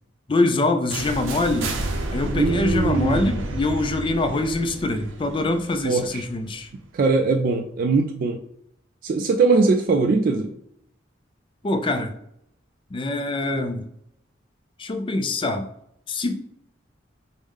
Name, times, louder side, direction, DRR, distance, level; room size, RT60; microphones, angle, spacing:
voice 1, 0.3-1.8 2.1-6.7 11.6-12.1 12.9-13.9 14.8-15.7 16.1-16.3, left 2 dB, 25° left, 7 dB, 0.4 m, -24 dB
sound 1, 0.9-6.7, right 1 dB, 90° right, 0.6 m, -30 dB
voice 2, 2.4-3.2 5.8-6.2 6.9-8.4 9.0-10.5, right 4 dB, 45° right, 3 dB, 0.3 m, -21 dB
4.8 x 2.1 x 3.5 m, 0.74 s
head